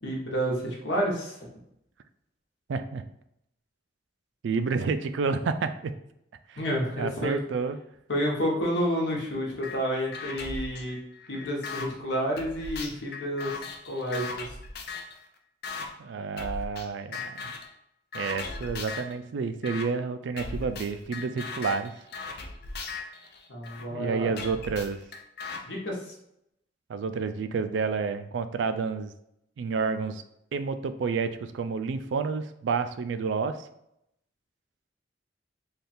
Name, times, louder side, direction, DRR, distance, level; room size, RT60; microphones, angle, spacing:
voice 1, 0.0-1.3 6.6-7.4 8.1-11.0 11.3-13.5 13.9-14.4 23.5-24.3 25.6-26.0, equal, 80° left, -1 dB, 1.1 m, -29 dB
voice 2, 2.7-3.0 4.4-5.9 6.5-6.6 7.0-7.8 16.0-17.5 18.1-21.9 23.9-25.0 26.9-29.1 29.6-30.2 30.5-33.7, right 5 dB, 80° right, 10 dB, 0.3 m, -30 dB
sound 1, 9.6-9.8 10.1-11.9 12.4-15.2 15.6-15.9 16.4-16.9 17.1-17.7 18.1-19.1 19.6-19.9 20.4-23.8 24.4-25.6, left 4 dB, 60° left, 0.5 m, -38 dB
3.5 x 2.4 x 4.2 m, 0.78 s
head